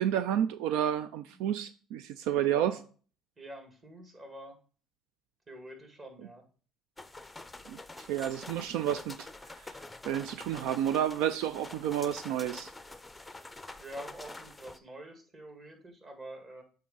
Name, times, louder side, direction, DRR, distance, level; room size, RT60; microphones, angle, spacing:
voice 1, 0.0-2.7 7.7-9.3 9.6-9.8 10.0-12.7, right 10 dB, 85° right, 0.3 m, -30 dB
voice 2, 2.5-2.8 3.4-4.6 5.5-6.4 13.7-16.6, right 1 dB, 35° right, 2.0 m, -46 dB
sound 1, 7.0-14.8, left 2 dB, 10° left, 0.5 m, -47 dB
8.4 x 3.7 x 3.9 m
cardioid pair, 105°, 0 cm